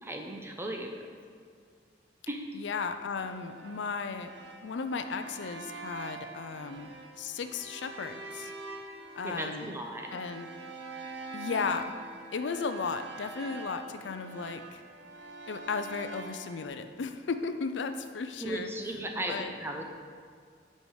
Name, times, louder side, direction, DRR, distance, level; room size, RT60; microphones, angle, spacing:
voice 1, 0.0-1.0 2.3-2.4 9.2-10.2 18.4-19.8, right 1 dB, 15° right, 2 dB, 0.7 m, -36 dB
voice 2, 2.5-4.3 4.6-6.9 7.2-8.5 9.1-9.7 10.1-10.5 11.3-11.9 12.3-14.8 15.5-18.7 19.3-19.5, left 5 dB, 75° left, 8 dB, 0.5 m, -35 dB
sound 1, 3.2-16.7, right 3 dB, 75° right, 0.8 m, -45 dB
8.4 x 5.6 x 4.8 m, 2.1 s
head